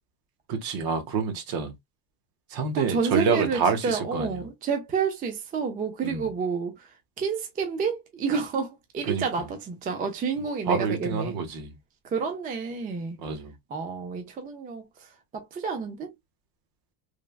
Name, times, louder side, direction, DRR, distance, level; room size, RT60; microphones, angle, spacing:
voice 1, 0.5-1.7 2.5-4.4 6.0-6.3 9.0-9.5 10.7-11.8 13.2-13.5, right 5 dB, 50° right, 0.9 m, -28 dB
voice 2, 2.7-6.7 7.2-11.4 12.0-13.2 13.7-14.8 15.3-16.1, right 5 dB, 20° right, 0.4 m, -29 dB
3.3 x 2.2 x 2.3 m
cardioid pair, 135°, 45 cm